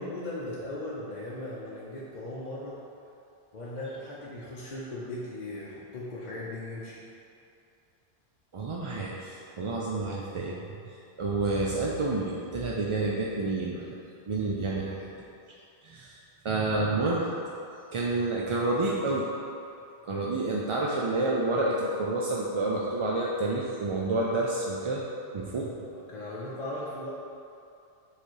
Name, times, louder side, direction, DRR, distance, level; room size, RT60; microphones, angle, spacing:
voice 1, 0.0-2.8 3.5-7.0 25.9-27.1, left 1 dB, 45° left, -7 dB, 0.9 m, -38 dB
voice 2, 8.5-13.9 14.3-15.1 15.8-16.2 16.4-17.3 17.9-19.3 20.0-25.0 25.3-25.7, right 2 dB, 45° right, -4 dB, 0.4 m, -29 dB
7.3 x 3.3 x 4.5 m, 2.6 s
omnidirectional pair, 1.1 m